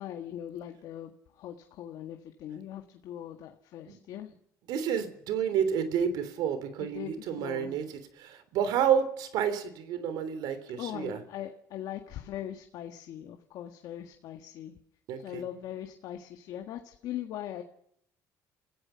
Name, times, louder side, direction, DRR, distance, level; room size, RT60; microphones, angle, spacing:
voice 1, 0.0-4.3 6.8-7.8 10.8-14.8 15.2-17.6, left 11 dB, 75° left, 5 dB, 1.7 m, -40 dB
voice 2, 4.7-11.2 15.1-15.4, right 8 dB, 85° right, 12 dB, 3.3 m, -30 dB
29.5 x 16.0 x 5.8 m, 0.71 s
cardioid pair, 105°, 7 cm